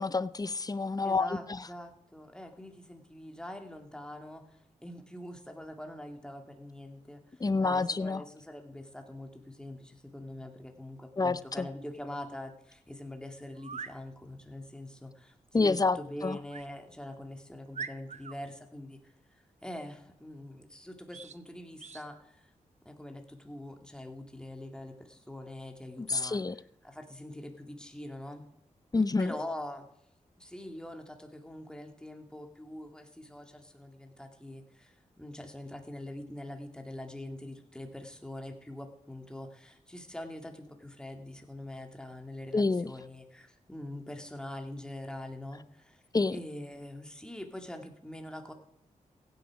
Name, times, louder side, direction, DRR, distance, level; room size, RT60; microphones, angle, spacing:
voice 1, 0.0-1.6 7.4-8.2 11.2-11.7 15.5-16.0 16.2-16.4 26.0-26.5 28.9-29.3 42.5-42.9 46.1-46.4, left 3 dB, 25° left, 0.6 m, -28 dB
voice 2, 1.0-22.5 22.8-26.4 26.8-28.5 29.2-29.8 30.4-46.0 46.3-48.5, left 1 dB, 5° left, 2.3 m, -44 dB
sound 1, 13.5-14.0 16.5-16.7 17.2-17.3 17.7-18.4 21.1-21.4 21.8-22.1, right 6 dB, 55° right, 0.7 m, -42 dB
16.0 x 9.5 x 4.9 m
cardioid pair, 55°, 14 cm